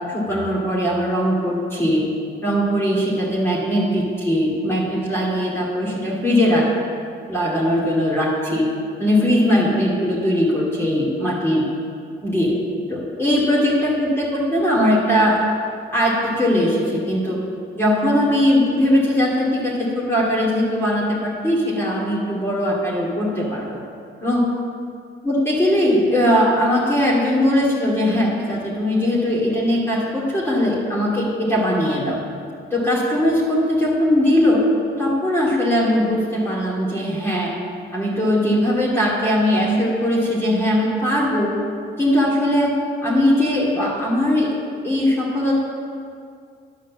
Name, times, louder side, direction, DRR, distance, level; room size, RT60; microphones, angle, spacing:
voice 1, 0.1-2.0 2.4-6.7 7.3-8.6 9.0-11.6 12.2-12.5 12.9-15.4 15.9-17.4 17.7-23.8 24.2-24.4 25.2-32.2 32.7-34.6 35.0-37.5 37.9-41.6 42.0-42.7 43.0-44.5 44.8-45.6, equal, 10° left, -7 dB, 2.4 m, -20 dB
11.0 x 5.0 x 7.4 m, 2.3 s
cardioid pair, 90°, 20 cm